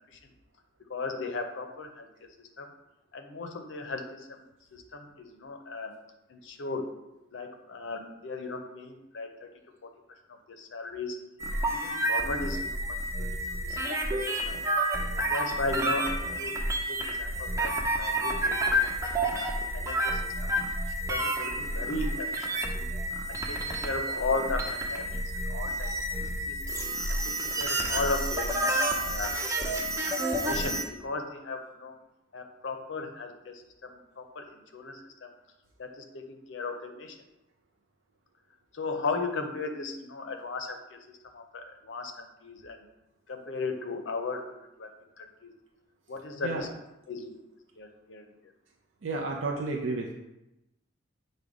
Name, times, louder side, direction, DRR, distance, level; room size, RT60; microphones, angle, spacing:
voice 1, 0.9-2.7 3.1-4.4 4.7-5.9 6.3-7.0 7.3-9.9 10.3-11.2 11.5-14.6 15.2-16.6 16.9-20.5 21.1-22.9 23.3-25.2 25.5-25.9 26.3-26.6 27.1-29.4 30.3-31.9 32.3-35.3 35.8-37.2 38.7-42.8 43.3-44.9 45.2-45.5 46.1-46.7 47.1-47.3 47.8-48.3, left 3 dB, 70° left, 5 dB, 0.5 m, -36 dB
sound 1, 11.4-30.8, right 1 dB, 15° right, 0.5 m, -30 dB
voice 2, 49.0-50.1, right 3 dB, 85° right, 0 dB, 0.5 m, -31 dB
5.1 x 2.2 x 4.8 m, 0.94 s
head